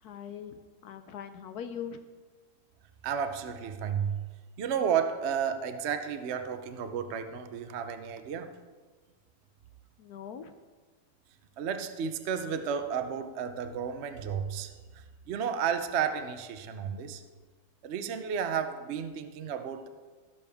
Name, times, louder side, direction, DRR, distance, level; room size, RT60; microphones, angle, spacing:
voice 1, 0.0-2.0 10.0-10.5, left 8 dB, 70° left, 9 dB, 0.9 m, -41 dB
voice 2, 3.0-4.2 4.6-8.5 11.6-17.2 17.8-19.9, right 7 dB, 70° right, 8 dB, 0.6 m, -32 dB
16.5 x 6.9 x 3.5 m, 1.4 s
omnidirectional pair, 2.1 m